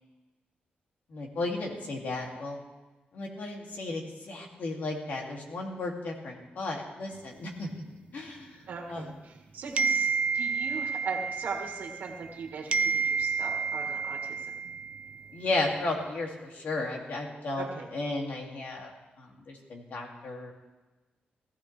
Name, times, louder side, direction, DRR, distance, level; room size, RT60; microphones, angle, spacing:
voice 1, 1.1-2.6 3.1-7.8 8.1-8.6 8.9-9.1 15.3-17.7 17.9-18.9 19.2-20.5, left 2 dB, 55° left, 0 dB, 2.5 m, -34 dB
voice 2, 8.7-14.5 17.6-17.9, right 4 dB, 65° right, 2 dB, 1.8 m, -39 dB
sound 1, 9.8-12.4 12.7-15.3, right 5 dB, 40° right, 0.4 m, -30 dB
17.0 x 15.0 x 3.4 m, 1.2 s
wide cardioid pair, 180°, 3 cm